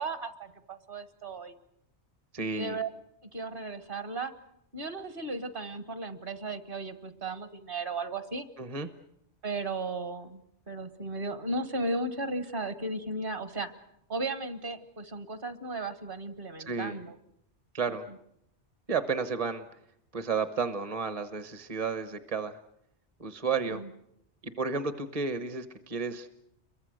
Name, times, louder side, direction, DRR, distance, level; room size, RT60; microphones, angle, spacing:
voice 1, 0.0-1.5 2.5-2.9 3.3-4.3 4.7-8.4 9.4-10.4 10.7-13.8 14.1-17.1 23.6-23.9, right 2 dB, 50° right, 10 dB, 1.7 m, -35 dB
voice 2, 2.3-2.8 8.6-8.9 16.6-17.0 17.7-18.1 18.9-19.6 20.1-22.6 23.2-23.8 24.4-26.3, right 5 dB, 35° right, 10 dB, 1.1 m, -32 dB
29.5 x 23.0 x 6.4 m, 0.76 s
omnidirectional pair, 1.2 m